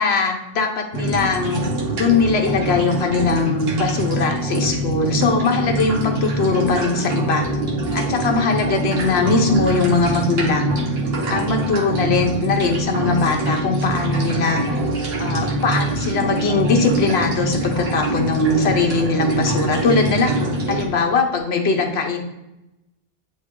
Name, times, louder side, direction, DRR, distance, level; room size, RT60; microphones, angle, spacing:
voice 1, 0.0-1.6 1.9-7.5 7.9-10.7 11.3-14.6 15.2-20.4 20.7-22.2, left 3 dB, 80° left, 3 dB, 1.2 m, -20 dB
sound 1, 0.9-20.9, right 1 dB, 70° right, 1.2 m, -24 dB
sound 2, 5.4-5.7 6.2-6.5 7.0-7.2 7.9-8.1 9.0-9.1 9.9-10.1, left 3 dB, 55° left, 1.2 m, -41 dB
8.7 x 3.2 x 3.7 m, 0.93 s
omnidirectional pair, 1.1 m